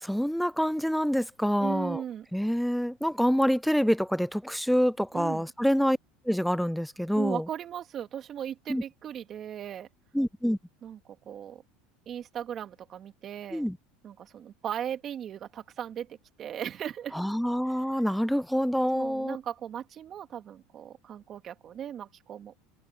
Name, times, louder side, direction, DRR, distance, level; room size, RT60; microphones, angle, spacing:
voice 1, 0.0-2.0 2.3-6.0 6.3-7.4 8.7-8.8 10.1-10.6 13.5-13.8 17.1-19.4, equal, ahead, 0.3 m, -26 dB
voice 2, 1.6-2.3 5.1-5.5 7.1-9.9 10.8-11.6 12.1-13.7 14.0-17.1 17.7-17.8 18.9-22.6, right 9 dB, 40° right, 2.2 m, -38 dB
supercardioid pair, 105°, 0 cm